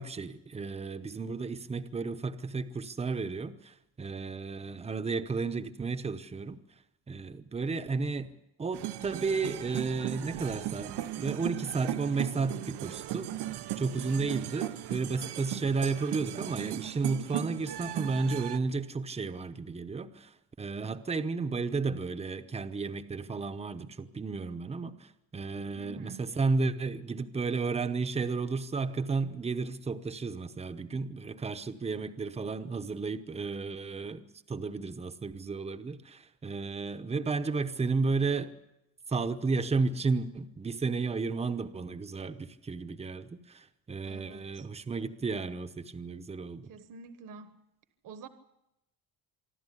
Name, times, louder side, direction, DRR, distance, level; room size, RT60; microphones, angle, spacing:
voice 1, 0.0-6.6 7.1-8.3 8.6-10.9 11.2-13.3 13.8-34.2 34.5-38.5 39.1-46.7, right 4 dB, 15° right, 0.9 m, -33 dB
sound 1, 8.7-18.6, right 13 dB, 85° right, 1.0 m, -37 dB
voice 2, 25.8-26.3 44.0-44.7 46.7-47.6 48.0-48.3, right 4 dB, 55° right, 1.3 m, -48 dB
25.5 x 12.5 x 9.9 m
cardioid pair, 160°, 39 cm